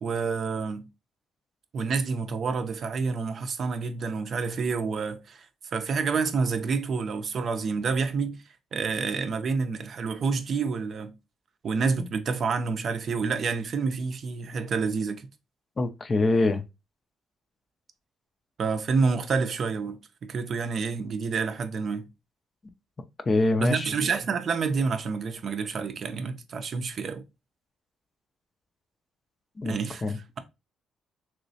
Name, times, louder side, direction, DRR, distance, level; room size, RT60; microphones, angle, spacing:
voice 1, 0.0-0.9 1.7-5.4 5.7-8.4 8.7-11.2 11.6-15.3 18.6-22.1 23.6-27.2 29.6-30.4, right 5 dB, 55° right, 0.4 m, -28 dB
voice 2, 15.8-16.6 23.3-23.9 29.6-30.2, left 2 dB, 35° left, 0.4 m, -24 dB
3.1 x 3.0 x 2.6 m
cardioid pair, 90°, 0 cm